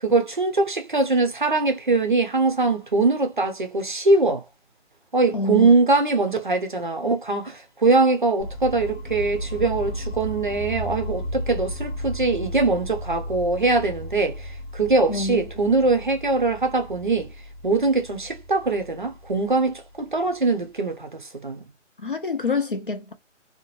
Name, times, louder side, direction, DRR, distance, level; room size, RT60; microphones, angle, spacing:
voice 1, 0.0-4.4 5.1-17.3 17.6-21.6, right 3 dB, 40° right, 0.5 m, -22 dB
voice 2, 5.3-5.7 15.1-15.5 22.0-23.1, left 3 dB, 45° left, 0.4 m, -26 dB
sound 1, 8.4-20.3, equal, 75° left, 1.0 m, -34 dB
2.7 x 2.2 x 3.0 m
hypercardioid pair, 180°, 37 cm